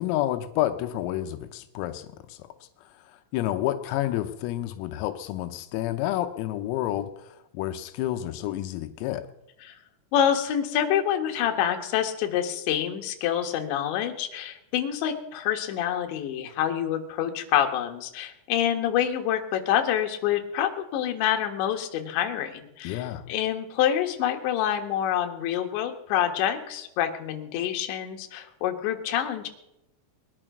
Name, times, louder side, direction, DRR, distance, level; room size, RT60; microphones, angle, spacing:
voice 1, 0.0-2.5 2.9-9.3 22.9-23.3, left 13 dB, 90° left, 8 dB, 3.5 m, -30 dB
voice 2, 10.1-29.5, left 10 dB, 70° left, 4 dB, 3.5 m, -27 dB
21.0 x 11.0 x 6.1 m, 0.86 s
omnidirectional pair, 6.0 m